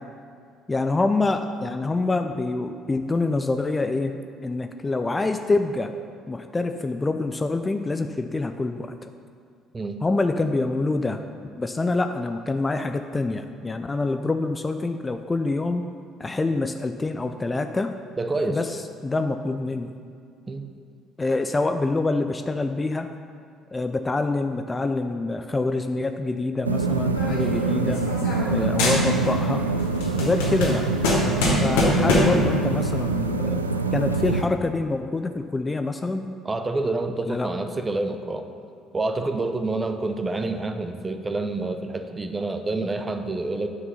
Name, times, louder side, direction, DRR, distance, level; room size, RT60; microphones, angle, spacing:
voice 1, 0.7-4.1 4.4-5.9 6.3-9.1 10.0-11.2 11.6-15.8 16.2-17.9 18.5-19.9 21.2-23.1 23.7-28.0 28.5-29.6 30.1-30.9 31.6-33.6 33.9-36.3 37.3-37.5, left 3 dB, 20° left, 7 dB, 0.5 m, -26 dB
voice 2, 18.2-18.6 20.5-20.7 28.5-28.8 31.5-31.7 36.4-38.5 38.9-43.7, right 2 dB, 25° right, 7 dB, 0.8 m, -28 dB
sound 1, 26.6-34.4, right 3 dB, 85° right, 0.3 m, -25 dB
sound 2, 27.1-28.5 28.8-29.5 29.8-32.5, left 1 dB, 65° left, 1.7 m, -24 dB
9.6 x 6.0 x 5.5 m, 2.3 s
figure-of-eight pair, 50°, 0 cm